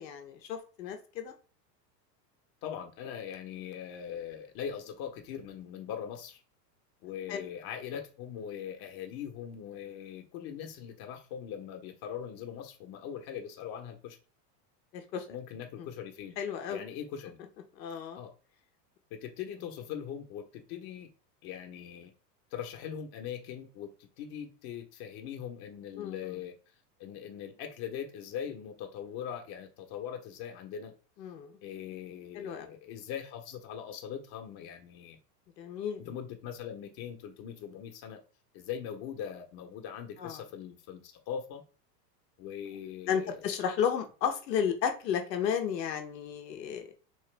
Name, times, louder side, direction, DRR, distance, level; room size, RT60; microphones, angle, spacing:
voice 1, 0.0-1.3 7.3-7.4 14.9-15.2 16.4-16.8 17.8-18.2 26.0-26.3 31.2-31.5 32.4-32.7 35.6-36.0 40.2-40.4 43.1-46.9, left 8 dB, 85° left, 5 dB, 0.9 m, -33 dB
voice 2, 2.6-6.4 7.0-14.2 15.3-16.4 16.7-17.4 18.1-18.3 19.1-21.1 21.4-22.1 22.5-26.5 27.0-30.9 31.6-35.2 36.0-38.2 38.5-41.6 42.4-43.5, left 8 dB, 50° left, 5 dB, 1.0 m, -41 dB
3.2 x 2.9 x 3.3 m, 0.36 s
hypercardioid pair, 105°, 49 cm